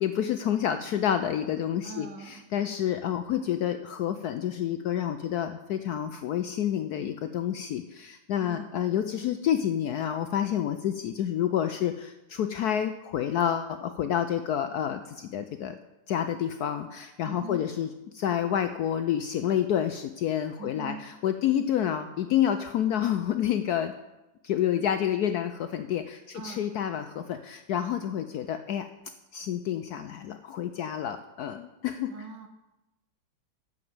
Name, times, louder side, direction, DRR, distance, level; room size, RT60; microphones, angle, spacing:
voice 1, 0.0-15.8 16.1-23.9 24.4-28.9 29.3-32.1, left 10 dB, 70° left, 9 dB, 0.9 m, -29 dB
voice 2, 1.8-2.4 8.4-8.9 17.3-17.6 20.6-21.1 26.3-26.7 32.1-32.5, right 2 dB, 65° right, 6 dB, 1.8 m, -42 dB
12.0 x 5.2 x 7.7 m, 0.98 s
omnidirectional pair, 2.1 m